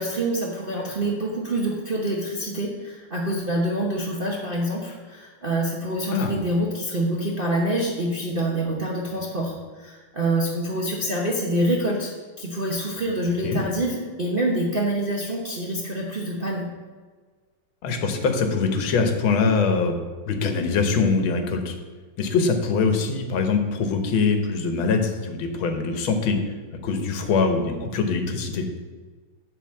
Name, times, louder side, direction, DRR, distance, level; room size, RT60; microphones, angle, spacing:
voice 1, 0.0-16.7, right 1 dB, 35° right, -3 dB, 0.9 m, -26 dB
voice 2, 17.8-20.0 20.3-21.8 22.2-26.4 26.8-28.7, left 4 dB, 70° left, 5 dB, 1.8 m, -23 dB
9.4 x 4.1 x 7.3 m, 1.4 s
omnidirectional pair, 2.3 m